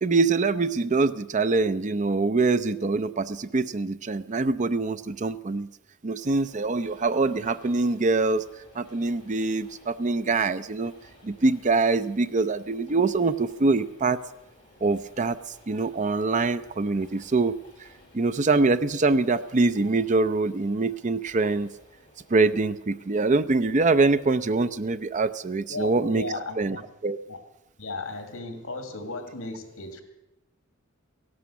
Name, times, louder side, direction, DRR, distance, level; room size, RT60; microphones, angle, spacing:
voice 1, 0.0-5.7 6.0-8.4 8.7-10.9 11.2-14.2 14.8-15.4 15.7-17.6 18.1-21.7 22.3-26.2 26.6-26.8 27.0-27.2, right 3 dB, 35° right, 12 dB, 0.5 m, -24 dB
Train, 6.2-25.3, left 1 dB, 25° left, 3.7 m, -56 dB
voice 2, 25.7-26.8 27.3-27.4 27.8-30.0, left 3 dB, 75° left, 6 dB, 2.2 m, -35 dB
16.5 x 11.5 x 7.0 m, 0.94 s
head